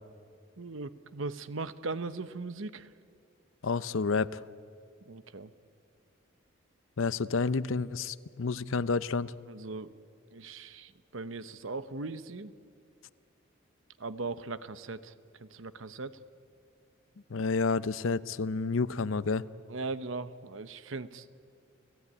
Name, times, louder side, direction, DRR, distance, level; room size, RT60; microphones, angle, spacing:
voice 1, 0.6-2.9 5.0-5.5 9.5-9.9 10.3-12.5 14.0-15.1 15.4-16.2 19.7-21.3, right 3 dB, 75° right, 14 dB, 0.9 m, -39 dB
voice 2, 3.6-4.4 7.0-9.3 17.3-19.4, left 4 dB, 75° left, 17 dB, 0.6 m, -30 dB
30.0 x 16.0 x 9.8 m, 2.3 s
head